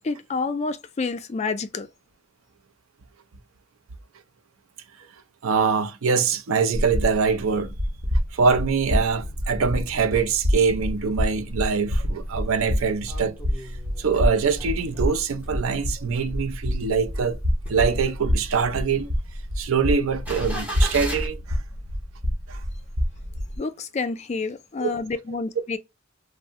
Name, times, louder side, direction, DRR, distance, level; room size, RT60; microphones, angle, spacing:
voice 1, 0.0-1.9 23.6-25.8, left 4 dB, 35° left, 0.3 m, -29 dB
voice 2, 5.4-7.7 8.3-13.4 14.0-17.4 17.7-19.1 19.6-21.6 22.5-22.6 24.8-24.9, right 5 dB, 80° right, 0.5 m, -23 dB
sound 1, 6.7-23.6, equal, 60° right, 0.9 m, -28 dB
sound 2, 10.8-11.5 11.9-12.0 12.2-15.6 16.0-16.9 17.3-21.3, equal, 10° right, 0.9 m, -38 dB
3.4 x 2.0 x 2.5 m
head